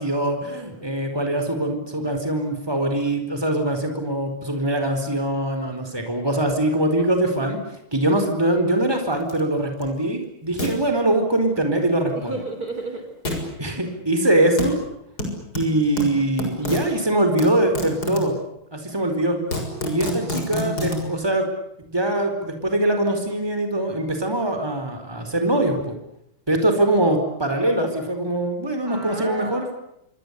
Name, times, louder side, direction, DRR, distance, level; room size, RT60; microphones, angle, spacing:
voice 1, 0.0-7.6 7.9-12.4 13.6-14.8 15.5-18.3 18.7-19.4 19.8-21.5 21.8-26.0 26.5-29.7, right 1 dB, 10° right, 6 dB, 4.7 m, -22 dB
sound 1, 9.3-9.4 9.8-9.9 10.6-10.7 13.3-13.5 14.6-14.7 15.2-16.9 17.4-18.3 19.0-19.1 19.3-21.0, left 2 dB, 50° left, 7.2 m, -27 dB
voice 2, 12.1-13.0 13.3-13.6 28.8-29.7, right 2 dB, 45° right, 7 dB, 4.4 m, -33 dB
27.5 x 24.0 x 8.5 m, 0.77 s
omnidirectional pair, 2.2 m